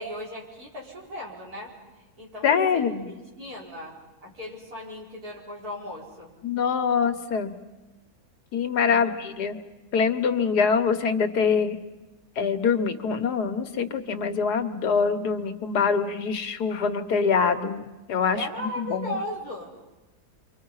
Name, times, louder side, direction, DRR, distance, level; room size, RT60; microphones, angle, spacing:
voice 1, 0.0-1.7 2.2-2.9 3.4-6.3 8.9-9.1 18.3-19.7, left 1 dB, 70° right, -3 dB, 5.6 m, -36 dB
voice 2, 2.4-3.1 6.4-7.5 8.5-9.6 9.9-11.8 12.4-17.8 18.1-19.2, left 6 dB, 85° left, 8 dB, 1.8 m, -24 dB
30.0 x 24.5 x 5.6 m, 1.1 s
omnidirectional pair, 1.7 m